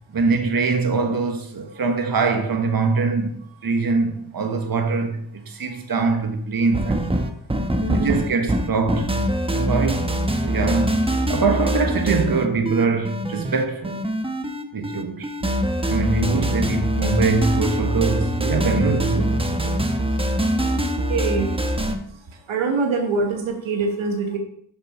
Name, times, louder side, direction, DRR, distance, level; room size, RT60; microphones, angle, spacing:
voice 1, 0.1-3.3 3.6-7.0 7.9-9.2 9.5-10.1 10.4-14.0 14.7-15.3 15.9-19.9, right 4 dB, 50° right, 1.3 m, -23 dB
sound 1, 6.7-22.0, equal, 10° right, 0.9 m, -23 dB
voice 2, 7.8-8.2 21.1-21.5 22.5-24.4, right 4 dB, 80° right, 1.3 m, -24 dB
6.7 x 6.0 x 4.2 m
cardioid pair, 55°, 47 cm